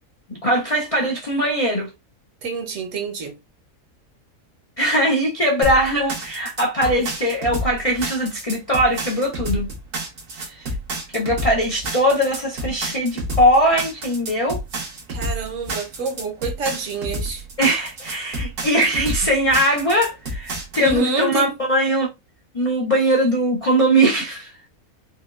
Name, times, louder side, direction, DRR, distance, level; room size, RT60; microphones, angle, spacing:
voice 1, 0.3-1.9 4.8-9.7 10.4-10.7 11.1-14.6 17.6-22.1 22.5-24.5, equal, 55° left, 0.4 m, -20 dB
voice 2, 2.4-3.4 15.1-17.5 20.8-21.5, right 3 dB, 60° right, 1.1 m, -26 dB
sound 1, 5.6-21.0, right 1 dB, 90° right, 1.6 m, -29 dB
4.2 x 2.3 x 2.4 m
omnidirectional pair, 1.6 m